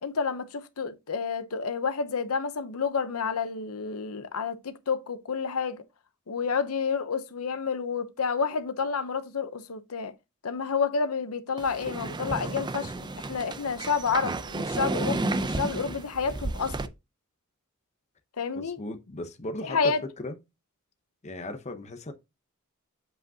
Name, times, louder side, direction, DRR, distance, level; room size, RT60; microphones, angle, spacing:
voice 1, 0.0-5.8 6.3-10.1 10.4-16.8 18.4-18.8 19.6-20.0, left 5 dB, 80° left, 0.7 m, -29 dB
sound 1, 11.6-16.9, right 2 dB, 20° right, 0.4 m, -32 dB
voice 2, 18.5-20.4 21.2-22.1, left 1 dB, 30° left, 0.8 m, -37 dB
7.7 x 5.2 x 2.7 m
head